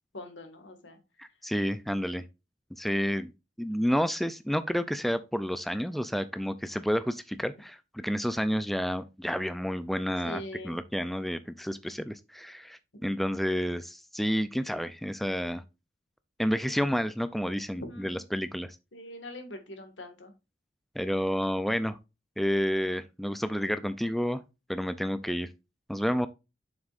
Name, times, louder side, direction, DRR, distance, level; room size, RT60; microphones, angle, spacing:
voice 1, 0.1-1.0 1.3-1.4 10.2-10.8 17.7-18.2 18.9-20.3, left 1 dB, 90° left, 1.8 m, -42 dB
voice 2, 1.2-2.2 2.7-3.3 3.6-15.6 16.4-18.8 21.0-22.0 22.4-24.4 24.7-25.5 25.9-26.3, equal, ahead, 0.3 m, -30 dB
7.3 x 6.2 x 2.5 m
head